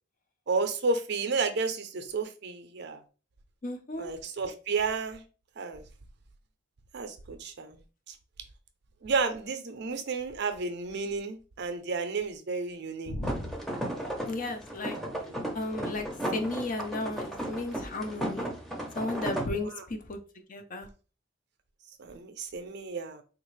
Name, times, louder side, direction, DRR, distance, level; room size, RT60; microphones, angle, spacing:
voice 1, 0.5-3.0 4.0-5.2 5.6-5.8 6.9-7.8 8.1-8.2 9.0-13.2 13.9-14.1 15.0-15.5 19.6-19.8 22.0-23.2, right 4 dB, 60° right, 0.5 m, -32 dB
voice 2, 3.6-4.1 13.1-13.6 14.3-15.0 15.5-18.5 18.9-20.2 20.5-20.9, left 2 dB, 45° left, 0.6 m, -34 dB
sound 1, 13.2-19.5, right 1 dB, ahead, 0.6 m, -35 dB
3.5 x 2.4 x 3.1 m
head